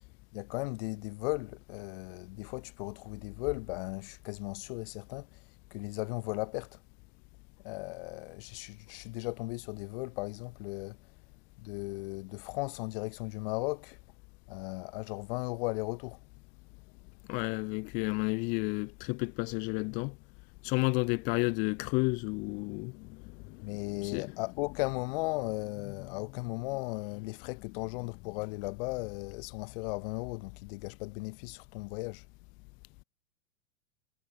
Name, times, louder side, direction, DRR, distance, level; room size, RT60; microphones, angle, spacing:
voice 1, 0.3-5.3 5.7-6.8 7.6-11.0 11.6-14.0 14.5-16.2 23.6-32.2, left 26 dB, 45° left, 1.1 m, -36 dB
voice 2, 17.3-20.1 20.6-24.3, left 31 dB, 20° left, 0.4 m, -32 dB
figure-of-eight pair, 100°, 40 cm